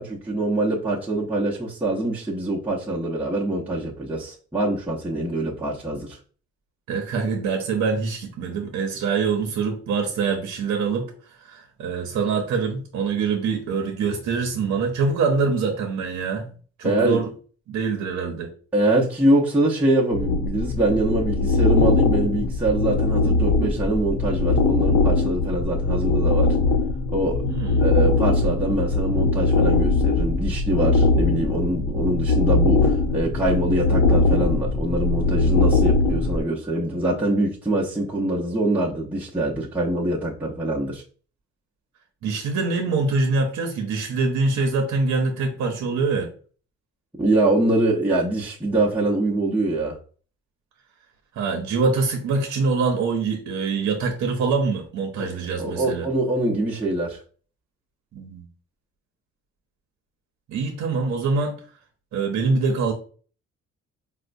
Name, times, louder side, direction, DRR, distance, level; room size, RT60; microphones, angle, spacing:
voice 1, 0.0-6.2 16.8-17.2 18.7-26.6 27.1-27.4 27.8-41.0 47.2-50.0 55.2-57.2, right 1 dB, 5° right, 0.7 m, -24 dB
voice 2, 6.9-11.1 11.4-16.5 16.8-17.3 17.7-18.5 27.4-27.9 42.2-46.3 51.3-56.1 58.1-58.5 60.5-61.6 62.1-62.9, right 4 dB, 65° right, 0.7 m, -24 dB
sound 1, 20.1-36.4, left 3 dB, 60° left, 0.6 m, -21 dB
4.2 x 2.1 x 2.5 m
cardioid pair, 90°, 30 cm